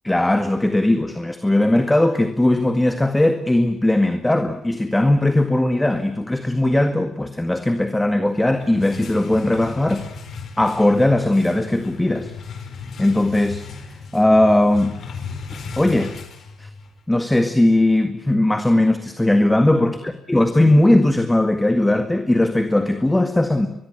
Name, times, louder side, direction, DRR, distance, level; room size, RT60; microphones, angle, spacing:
voice 1, 0.0-10.1 10.6-12.3 13.0-13.6 14.1-15.0 15.8-16.2 16.6-16.7 17.1-23.7, left 1 dB, 10° left, 8 dB, 1.9 m, -18 dB
sound 1, 8.4-17.0, left 5 dB, 55° left, 4.5 m, -36 dB
24.0 x 22.0 x 9.6 m, 0.77 s
cardioid pair, 90°, 0 cm